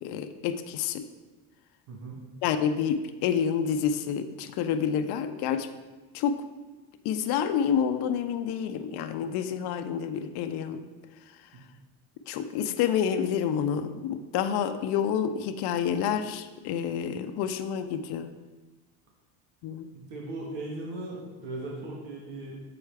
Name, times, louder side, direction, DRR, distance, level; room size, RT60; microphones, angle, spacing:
voice 1, 0.0-1.0 2.4-5.7 6.1-6.4 7.0-10.9 12.3-18.3 19.6-19.9, left 8 dB, 60° left, 8 dB, 0.6 m, -28 dB
voice 2, 1.9-2.2 19.9-22.6, right 2 dB, 80° right, -2 dB, 1.4 m, -38 dB
7.0 x 4.7 x 3.3 m, 1.2 s
supercardioid pair, 85°, 46 cm